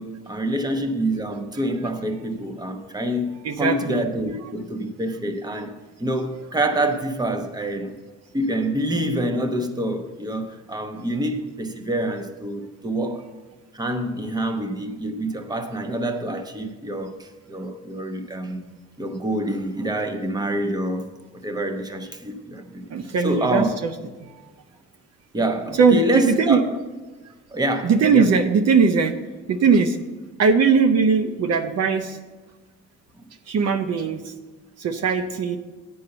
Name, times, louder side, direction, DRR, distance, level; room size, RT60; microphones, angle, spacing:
voice 1, 0.0-7.9 8.3-13.3 13.7-18.7 19.0-22.9 23.2-23.8 25.3-26.7 27.5-28.3, right 1 dB, 15° right, 0.9 m, -26 dB
voice 2, 3.4-4.0 22.9-23.9 24.2-24.5 25.8-26.6 27.8-29.1 29.5-30.0 30.4-32.2 33.5-34.3 34.8-35.6, right 5 dB, 55° right, 0.7 m, -19 dB
8.3 x 5.6 x 6.7 m
cardioid pair, 90°, 30 cm